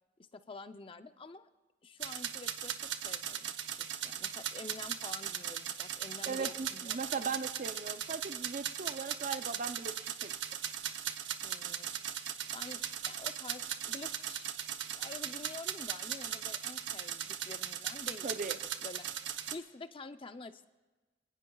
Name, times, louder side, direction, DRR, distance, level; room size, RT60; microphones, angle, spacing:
voice 1, 0.3-1.5 1.8-7.1 11.4-11.9 12.5-14.5 15.0-18.3 18.8-19.1 19.5-20.7, left 3 dB, 30° left, 9 dB, 0.6 m, -48 dB
sound 1, 2.0-19.5, right 9 dB, 85° right, 0.8 m, -38 dB
voice 2, 6.3-10.3 18.2-18.6, right 4 dB, 45° right, 10 dB, 0.6 m, -38 dB
26.5 x 18.5 x 2.3 m, 1.2 s
head